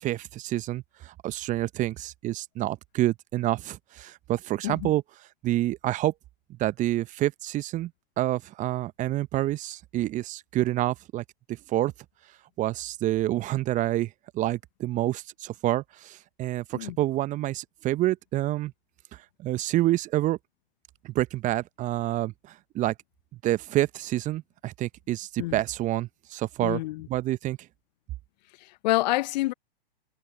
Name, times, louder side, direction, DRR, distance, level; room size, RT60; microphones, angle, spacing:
voice 1, 0.0-5.0 5.4-6.1 6.6-7.9 8.2-11.9 12.6-18.7 19.1-20.4 21.0-22.9 23.4-26.8 27.1-27.6, right 15 dB, 25° right, 1.0 m, -28 dB
voice 2, 26.6-27.1 28.6-29.5, left 18 dB, 45° left, 0.8 m, -28 dB
figure-of-eight pair, 110°, 31 cm